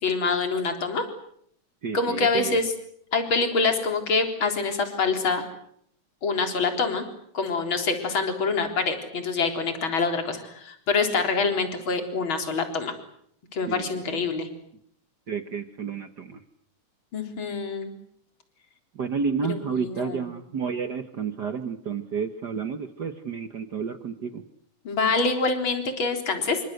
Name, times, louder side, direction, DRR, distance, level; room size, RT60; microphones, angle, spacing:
voice 1, 0.0-1.0 1.9-2.7 3.1-5.4 6.2-7.1 7.3-12.9 13.5-14.5 17.1-17.9 19.5-20.2 24.8-26.6, left 4 dB, 35° left, 5 dB, 4.4 m, -25 dB
voice 2, 1.8-2.6 13.7-13.9 14.1-14.3 15.3-16.4 18.9-24.4, right 6 dB, 80° right, 8 dB, 0.9 m, -31 dB
27.5 x 24.5 x 8.0 m, 0.69 s
omnidirectional pair, 3.7 m